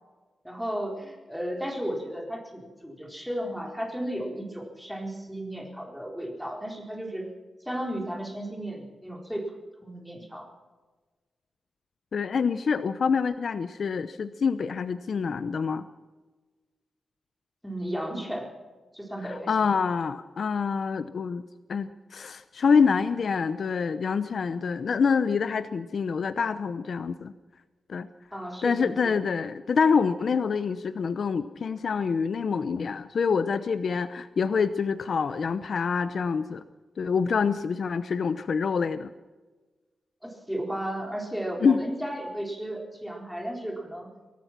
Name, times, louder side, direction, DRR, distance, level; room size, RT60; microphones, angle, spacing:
voice 1, 0.4-7.3 7.6-9.5 9.8-10.5 17.6-18.5 18.9-19.8 28.3-29.2 40.2-44.1, right 1 dB, ahead, 1 dB, 4.1 m, -34 dB
voice 2, 12.1-15.8 19.3-21.4 21.7-27.3 27.9-28.1 28.6-36.6 37.0-39.1 41.6-41.8, left 5 dB, 55° left, 12 dB, 0.8 m, -26 dB
24.0 x 18.0 x 6.0 m, 1.3 s
wide cardioid pair, 160°, 0 cm